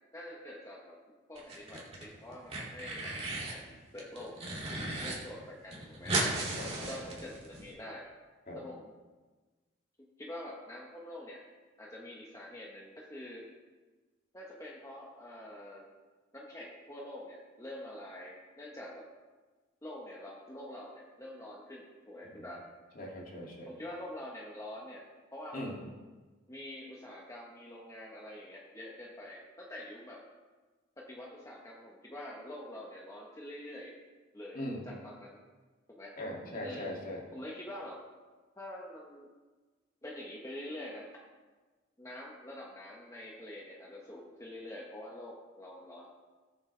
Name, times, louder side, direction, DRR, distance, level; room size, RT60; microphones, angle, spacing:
voice 1, 0.1-1.0 1.3-3.1 3.5-4.5 5.0-6.2 6.8-8.1 8.5-8.9 10.2-11.4 11.8-13.4 14.3-15.9 16.3-19.1 19.8-22.6 23.7-25.0 25.3-25.7 26.5-30.2 31.0-33.9 34.3-35.4 35.9-36.1 36.6-36.9 37.3-38.0 38.6-39.3 40.0-41.1 42.0-46.1, left 1 dB, 15° left, -3 dB, 1.2 m, -46 dB
sound 1, 1.4-2.0 2.3-3.6 4.0-5.1 5.4-5.5 5.7-7.6, right 2 dB, 30° right, 2.6 m, -35 dB
voice 2, 6.5-7.0 8.5-8.6 23.0-23.7 25.5-25.8 34.5-34.9 36.2-37.2, left 1 dB, 45° left, -2 dB, 2.4 m, -40 dB
19.0 x 7.6 x 3.4 m, 1.3 s
head